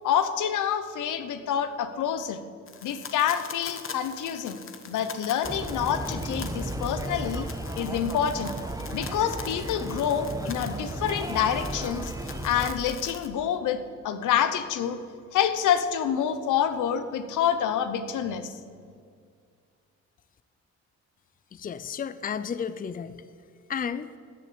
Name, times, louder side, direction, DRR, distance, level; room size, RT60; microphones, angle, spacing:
voice 1, 0.0-2.4 2.8-4.6 4.9-7.5 7.8-8.5 8.9-12.1 12.4-15.0 15.3-18.5, left 9 dB, 80° left, 10 dB, 1.0 m, -27 dB
sound 1, 2.7-13.3, left 6 dB, 45° left, 1.3 m, -44 dB
sound 2, 5.4-12.7, right 1 dB, 10° right, 1.2 m, -34 dB
voice 2, 21.5-23.2 23.7-24.2, left 7 dB, 30° left, 14 dB, 0.5 m, -33 dB
13.5 x 8.4 x 8.8 m, 2.2 s
cardioid pair, 90°, 30 cm